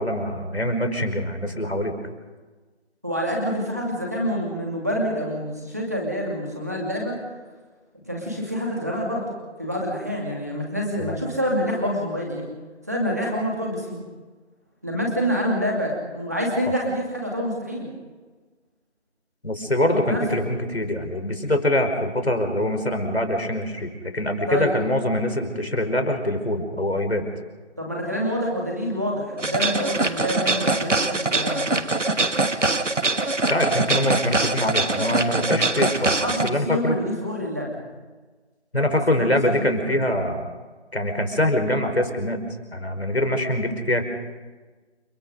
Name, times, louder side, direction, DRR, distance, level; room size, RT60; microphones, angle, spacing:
voice 1, 0.0-1.9 11.0-11.2 19.4-27.2 33.5-36.9 38.7-40.5 40.9-42.4 42.7-44.0, left 1 dB, 60° left, 5 dB, 5.2 m, -24 dB
voice 2, 3.0-7.2 8.0-9.3 9.6-12.4 12.9-14.0 14.8-17.9 19.9-20.2 24.5-24.7 27.8-31.8 36.2-37.7 39.1-40.0, equal, 15° right, -2 dB, 2.6 m, -27 dB
sound 1, 29.4-36.5, right 2 dB, 85° right, 1.6 m, -23 dB
30.0 x 17.5 x 5.3 m, 1.3 s
figure-of-eight pair, 180°, 35 cm